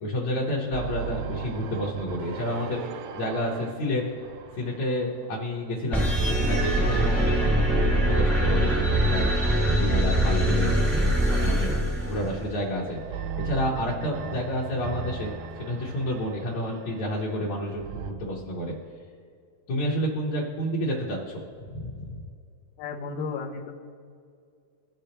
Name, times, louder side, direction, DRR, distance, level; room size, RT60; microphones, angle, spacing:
voice 1, 0.0-2.8 3.1-4.0 4.6-9.3 9.6-10.7 11.2-11.7 12.0-18.8 19.7-21.4 21.7-22.2, left 1 dB, 65° left, -5 dB, 2.2 m, -30 dB
sound 1, 0.7-5.7 6.0-11.3 12.1-18.1, right 7 dB, 80° right, 2.0 m, -37 dB
sound 2, 5.9-12.5, right 1 dB, ahead, 0.7 m, -23 dB
voice 2, 22.8-23.7, left 4 dB, 80° left, -2 dB, 2.4 m, -33 dB
17.5 x 6.6 x 2.9 m, 2.3 s
omnidirectional pair, 4.0 m